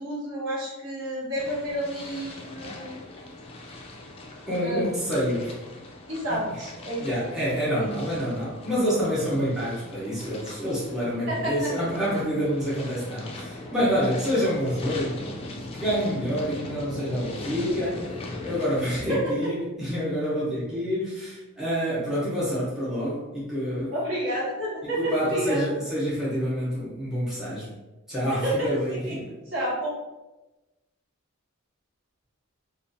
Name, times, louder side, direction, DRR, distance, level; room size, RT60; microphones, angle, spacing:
voice 1, 0.0-2.9 4.6-4.8 6.1-7.1 7.7-7.9 11.3-11.7 19.1-19.3 23.9-25.6 28.3-29.1 29.5-29.9, right 1 dB, 60° right, -7 dB, 1.0 m, -29 dB
sound 1, 1.4-19.0, left 2 dB, 25° left, 0.3 m, -40 dB
voice 2, 4.5-5.6 6.3-6.4 7.0-15.2 15.7-23.9 25.0-27.7 28.1-29.3, equal, ahead, -9 dB, 0.7 m, -27 dB
2.4 x 2.2 x 2.5 m, 1.1 s
head